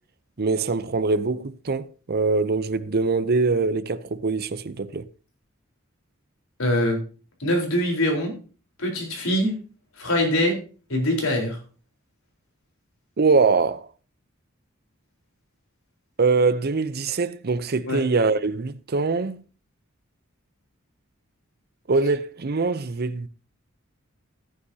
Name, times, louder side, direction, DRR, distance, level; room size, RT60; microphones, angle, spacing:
voice 1, 0.4-5.0 13.2-13.9 16.2-19.4 21.9-23.3, right 4 dB, 50° right, 0.6 m, -23 dB
voice 2, 6.6-7.0 7.4-8.3 8.8-9.5 10.0-10.6 10.9-11.6 17.9-18.0, left 1 dB, 85° left, 4.1 m, -23 dB
14.5 x 9.6 x 2.8 m
head